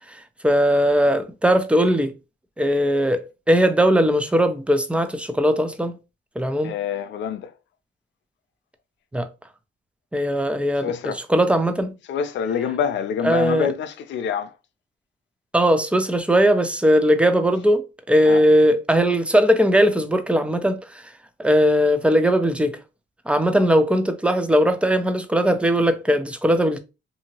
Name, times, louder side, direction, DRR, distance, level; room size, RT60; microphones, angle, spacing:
voice 1, 0.1-2.1 2.6-3.2 3.5-6.0 6.4-6.7 9.1-9.3 10.1-10.9 11.3-11.9 13.2-13.7 15.5-21.0 21.4-22.8 23.3-26.8, equal, 5° right, 0.4 m, -19 dB
voice 2, 6.6-7.5 10.8-11.2 12.1-14.5 18.3-18.4, left 7 dB, 65° left, 0.5 m, -26 dB
2.8 x 2.7 x 2.8 m
cardioid pair, 90°, 20 cm